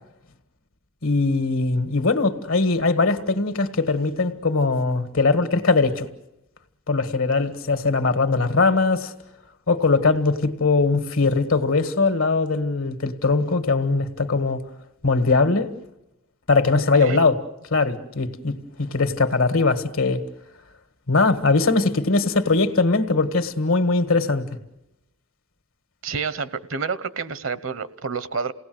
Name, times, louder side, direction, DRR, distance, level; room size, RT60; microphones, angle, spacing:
voice 1, 1.0-6.1 6.9-9.1 9.7-14.6 15.0-15.7 16.5-17.4 17.7-20.2 21.1-24.5, left 3 dB, 85° left, 1.8 m, -21 dB
voice 2, 26.0-28.5, right 5 dB, 70° right, 1.0 m, -29 dB
28.5 x 18.5 x 7.9 m
head